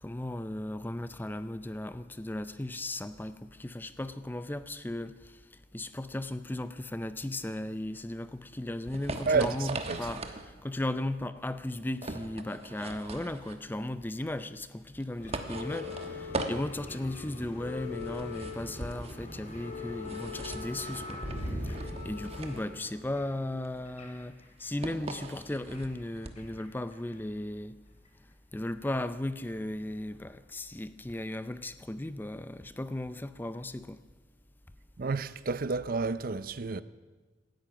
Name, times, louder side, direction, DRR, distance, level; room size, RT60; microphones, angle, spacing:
voice 1, 0.0-5.4 5.7-21.2 21.4-27.8 28.5-34.0, left 1 dB, 10° left, 0.4 m, -36 dB
sound 1, 8.2-26.6, right 2 dB, 30° right, 1.1 m, -41 dB
voice 2, 9.3-10.1 35.0-36.8, right 4 dB, 45° right, 0.5 m, -30 dB
sound 2, 15.2-24.7 25.5-26.7 26.9-27.1 28.1-28.2, left 2 dB, 35° left, 3.0 m, -41 dB
18.0 x 13.0 x 5.8 m
head